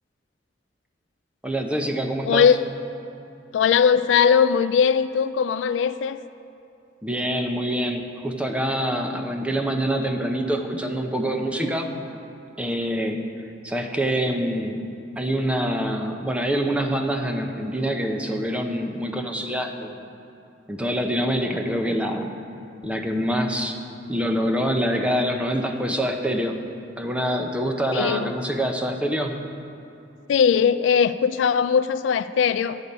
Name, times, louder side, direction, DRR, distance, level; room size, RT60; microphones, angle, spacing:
voice 1, 1.4-2.5 7.0-11.9 12.6-13.2 13.6-14.9 15.2-20.0 20.7-22.3 22.8-23.8 24.1-26.6 27.0-29.4, equal, 5° right, 4 dB, 0.7 m, -25 dB
voice 2, 2.3-2.6 3.5-6.2 27.9-28.3 30.3-32.8, left 7 dB, 90° left, 13 dB, 0.3 m, -19 dB
10.5 x 8.4 x 5.3 m, 2.7 s
head